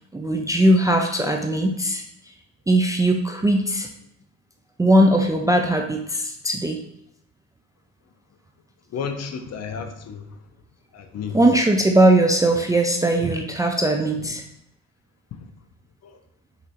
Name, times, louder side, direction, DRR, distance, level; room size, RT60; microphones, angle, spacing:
voice 1, 0.1-2.0 2.7-3.9 4.8-6.8 11.3-14.4, right 1 dB, 10° right, 3 dB, 0.3 m, -19 dB
voice 2, 8.9-10.2 10.9-11.4 14.2-14.3 16.0-16.2, left 6 dB, 50° left, 7 dB, 0.6 m, -32 dB
5.8 x 3.1 x 2.9 m, 0.76 s
cardioid pair, 110°, 33 cm